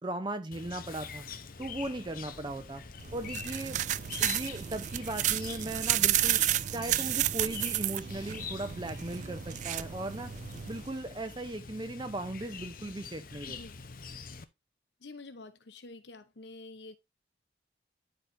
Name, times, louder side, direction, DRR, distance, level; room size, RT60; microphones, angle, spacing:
voice 1, 0.0-1.2 1.6-2.8 3.1-3.8 4.2-6.4 6.7-10.3 10.7-13.6, right 1 dB, 25° right, 0.7 m, -37 dB
Chirp tweet, 0.5-14.4, left 6 dB, 50° left, 0.8 m, -45 dB
sound 1, 1.6-11.6, equal, 35° left, 3.7 m, -59 dB
sound 2, 3.0-10.9, right 13 dB, 45° right, 0.3 m, -31 dB
voice 2, 13.5-13.9 15.0-17.0, left 3 dB, 80° left, 0.9 m, -48 dB
12.5 x 4.9 x 2.7 m
head